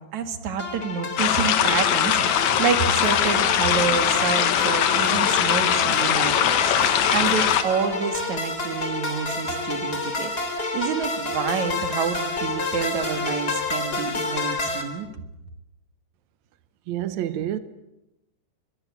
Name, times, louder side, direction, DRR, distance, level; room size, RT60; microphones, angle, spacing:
voice 1, 0.0-10.3 10.7-15.1, right 6 dB, 50° right, 2.9 m, -28 dB
sound 1, 0.6-14.8, left 2 dB, 25° left, 3.8 m, -29 dB
sound 2, 1.2-7.6, left 9 dB, 65° left, 1.9 m, -21 dB
voice 2, 16.9-17.6, right 11 dB, 80° right, 1.6 m, -28 dB
24.0 x 23.0 x 8.4 m
omnidirectional pair, 4.7 m